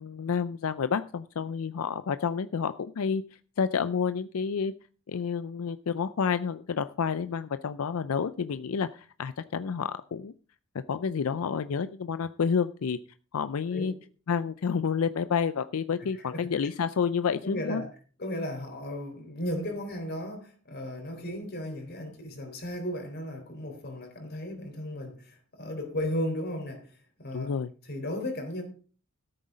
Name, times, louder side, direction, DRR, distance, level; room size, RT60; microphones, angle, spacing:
voice 1, 0.0-3.2 3.6-4.7 5.1-10.3 10.9-13.0 13.3-13.9 14.3-17.8 27.3-27.7, left 6 dB, 90° left, 0.5 m, -29 dB
voice 2, 16.1-16.6 17.4-17.9 18.2-26.9 27.2-27.5 27.8-28.6, left 1 dB, 50° left, 3.7 m, -35 dB
13.5 x 7.9 x 5.1 m
head